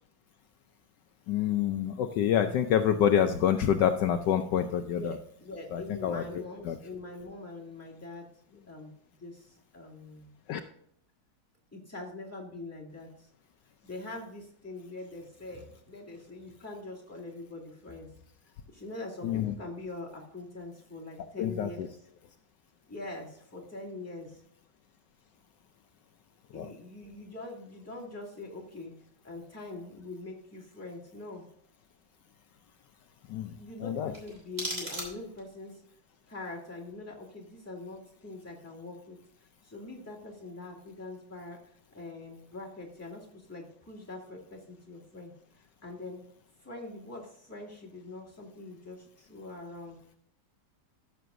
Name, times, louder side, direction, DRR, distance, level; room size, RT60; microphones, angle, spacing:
voice 1, 1.3-5.1 5.7-6.8 10.5-10.6 19.2-19.5 21.4-21.9 26.5-26.7 33.3-33.6 33.8-34.1, left 9 dB, 75° left, 7 dB, 1.2 m, -27 dB
voice 2, 4.8-8.3 8.7-8.9 9.2-10.3 11.7-13.3 13.8-18.1 18.7-21.9 22.9-24.4 26.5-28.9 29.2-31.4 33.6-35.8 36.3-39.2 39.6-41.6 41.9-45.3 45.8-46.2 46.6-50.0, left 2 dB, 10° left, -4 dB, 2.2 m, -43 dB
sound 1, 34.1-35.6, right 1 dB, 30° right, 3.3 m, -38 dB
14.0 x 6.9 x 2.6 m, 0.66 s
omnidirectional pair, 2.0 m